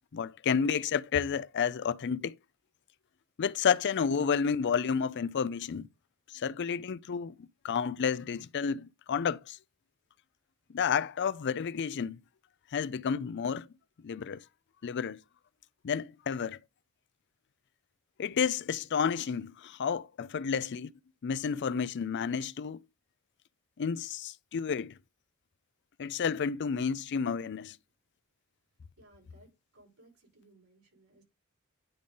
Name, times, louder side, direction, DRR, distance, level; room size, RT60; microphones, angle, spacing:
voice 1, 0.1-2.3 3.4-5.9 6.3-9.6 10.7-12.2 12.7-13.7 14.0-14.4 14.8-15.2 15.8-16.6 18.2-20.9 21.2-22.8 23.8-24.9 26.0-27.8, left 6 dB, 55° left, 0.4 m, -31 dB
voice 2, 29.0-31.2, right 1 dB, 85° right, 4.7 m, -61 dB
10.0 x 3.7 x 3.8 m
head